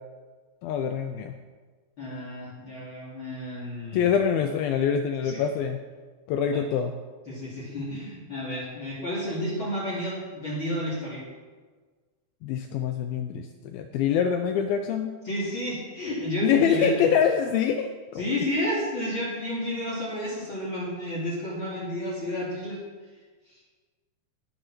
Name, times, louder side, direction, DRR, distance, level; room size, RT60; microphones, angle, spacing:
voice 1, 0.6-1.4 3.9-5.8 6.3-6.9 12.4-15.2 16.4-18.3, left 8 dB, 85° left, 6 dB, 2.1 m, -25 dB
voice 2, 2.0-4.1 5.2-5.4 6.5-6.6 7.3-11.2 15.2-16.9 18.2-22.8 23.5-23.6, left 1 dB, 30° left, -6 dB, 3.0 m, -31 dB
18.5 x 6.3 x 6.0 m, 1.4 s
omnidirectional pair, 5.0 m